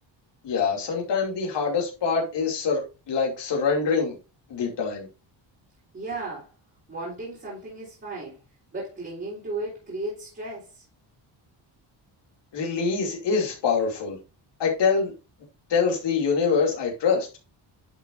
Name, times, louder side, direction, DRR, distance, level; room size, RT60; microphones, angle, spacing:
voice 1, 0.4-2.8 3.1-4.2 4.5-5.1 12.5-14.2 14.6-15.1 15.7-17.3, left 5 dB, 65° left, 2.7 m, -24 dB
voice 2, 5.9-6.5 6.9-8.4 8.7-10.8, right 2 dB, 25° right, 3.8 m, -35 dB
11.0 x 6.1 x 2.6 m
wide cardioid pair, 170°, 46 cm